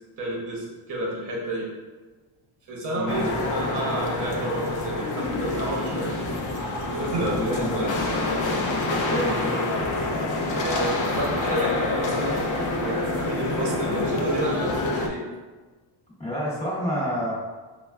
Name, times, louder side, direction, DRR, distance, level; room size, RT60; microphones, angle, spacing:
voice 1, 0.2-1.7 2.7-6.1 6.9-7.9 10.5-15.2, right 1 dB, 45° right, -3 dB, 0.9 m, -31 dB
voice 2, 2.9-3.3 7.3-7.8 9.1-9.7 16.2-17.3, equal, 15° left, -8 dB, 0.8 m, -28 dB
sound 1, 3.1-15.1, left 2 dB, 45° left, 0.4 m, -27 dB
5.1 x 2.3 x 2.2 m, 1.3 s
cardioid pair, 175°, 44 cm